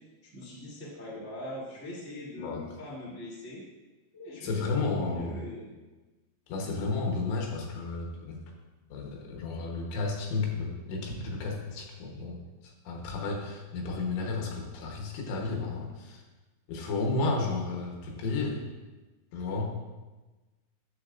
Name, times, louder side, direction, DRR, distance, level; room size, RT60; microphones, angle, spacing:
voice 1, 0.2-3.6 4.1-5.7, left 1 dB, 15° left, -9 dB, 0.5 m, -41 dB
voice 2, 2.4-2.7 4.4-5.4 6.5-8.4 8.9-12.4 12.9-16.2 16.7-18.6 19.3-19.8, left 3 dB, 75° left, 0 dB, 3.5 m, -32 dB
10.0 x 7.9 x 2.5 m, 1.2 s
omnidirectional pair, 5.5 m